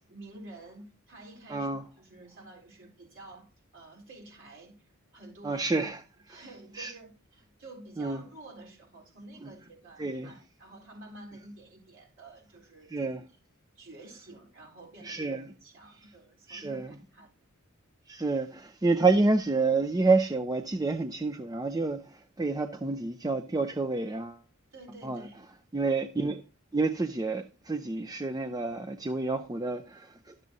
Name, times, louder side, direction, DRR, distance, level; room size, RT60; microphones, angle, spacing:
voice 1, 0.0-1.7 2.0-4.8 5.1-5.9 6.3-13.1 13.8-17.3 24.7-25.4, right 2 dB, 60° right, 3.8 m, -50 dB
voice 2, 1.5-1.8 5.4-6.0 6.8-6.9 8.0-8.2 10.0-10.3 12.9-13.2 15.0-15.5 16.5-16.9 18.1-24.4 25.0-25.3 25.7-26.4 26.7-30.4, right 3 dB, 15° right, 0.4 m, -28 dB
12.0 x 7.4 x 2.7 m
head